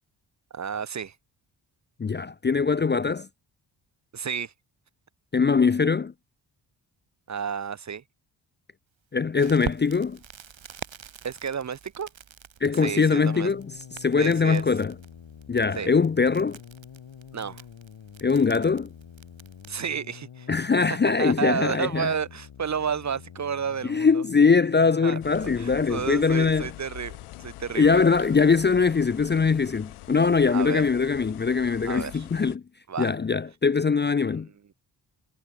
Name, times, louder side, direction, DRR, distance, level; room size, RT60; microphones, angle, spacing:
voice 1, 0.5-1.2 4.1-4.5 7.3-8.0 11.2-12.1 12.7-13.5 14.2-14.6 15.8-15.9 17.3-17.6 19.7-24.2 25.0-28.0 30.5-30.9 31.8-32.3 32.9-33.1, right 7 dB, 35° right, 0.8 m, -31 dB
voice 2, 2.0-3.3 5.3-6.1 9.1-10.2 12.6-13.6 14.0-14.9 15.5-16.6 18.2-18.9 20.5-22.1 23.9-26.7 27.7-32.6 33.0-34.5, left 5 dB, 20° left, 0.5 m, -22 dB
Crackle, 9.4-19.9, right 8 dB, 65° right, 6.4 m, -44 dB
sound 1, 13.3-27.8, left 8 dB, 60° left, 2.8 m, -47 dB
sound 2, 25.2-32.6, left 17 dB, 85° left, 1.1 m, -44 dB
supercardioid pair, 50°, 49 cm